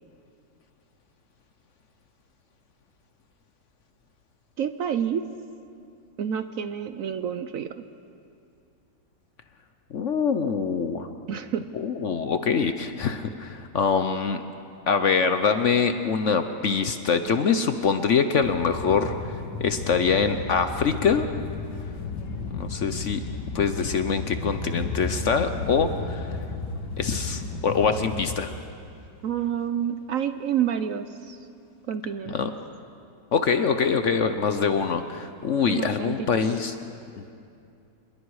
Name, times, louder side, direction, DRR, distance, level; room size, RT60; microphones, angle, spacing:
voice 1, 4.6-5.3 6.2-7.9 11.3-11.7 29.2-31.4 31.9-32.3 35.7-36.3, right 9 dB, 65° right, 10 dB, 0.9 m, -28 dB
voice 2, 9.9-11.1 11.7-14.4 14.9-19.1 19.6-21.3 22.5-23.2 23.5-26.3 27.0-28.6 32.3-32.5 33.3-36.7, left 5 dB, 55° left, 9 dB, 0.9 m, -24 dB
sound 1, 18.4-28.4, left 4 dB, 85° left, 2.1 m, -33 dB
26.5 x 21.5 x 4.8 m, 2.5 s
omnidirectional pair, 1.8 m